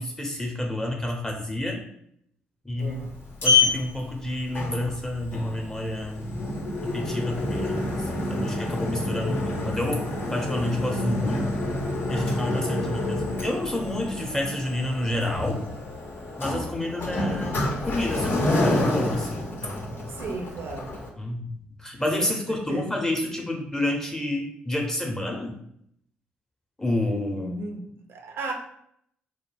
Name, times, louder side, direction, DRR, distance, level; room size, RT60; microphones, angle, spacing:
voice 1, 0.0-1.8 2.6-3.0 3.4-6.5 6.8-10.0 10.3-11.6 12.1-15.6 16.4-17.6 17.9-20.0 21.2-21.5 21.8-25.6 26.8-27.5, left 1 dB, 10° left, 1 dB, 0.7 m, -29 dB
Sliding door, 2.8-21.1, left 2 dB, 50° left, 0.7 m, -28 dB
voice 2, 2.8-3.1 20.1-20.9 22.2-22.9 27.3-28.5, right 3 dB, 55° right, 2 dB, 0.5 m, -35 dB
2.2 x 2.1 x 3.2 m, 0.70 s
hypercardioid pair, 45°, 5 cm